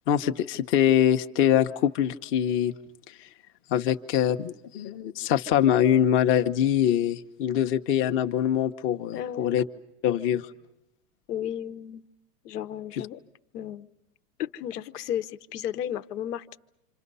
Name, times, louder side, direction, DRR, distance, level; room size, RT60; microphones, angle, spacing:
voice 1, 0.1-2.7 3.1-3.2 3.7-9.6 10.0-10.5, left 10 dB, 25° left, 6 dB, 1.0 m, -23 dB
voice 2, 9.1-9.6 11.3-12.0 12.4-13.2 13.5-13.9 14.4-16.6, left 10 dB, 70° left, 12 dB, 1.3 m, -33 dB
27.5 x 27.0 x 5.5 m, 0.88 s
supercardioid pair, 150°, 48 cm